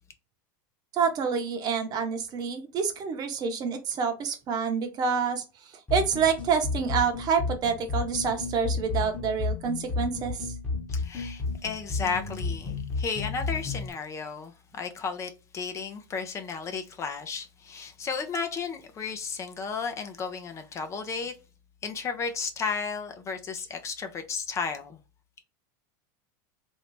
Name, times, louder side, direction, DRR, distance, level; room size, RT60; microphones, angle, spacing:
voice 1, 0.9-5.4 5.9-10.5, right 6 dB, 35° right, 0.8 m, -27 dB
sound 1, 5.9-13.9, left 4 dB, 10° left, 1.1 m, -32 dB
voice 2, 10.9-21.3 21.8-25.0, left 5 dB, 25° left, 0.5 m, -33 dB
3.2 x 2.6 x 3.1 m
supercardioid pair, 130°, 11 cm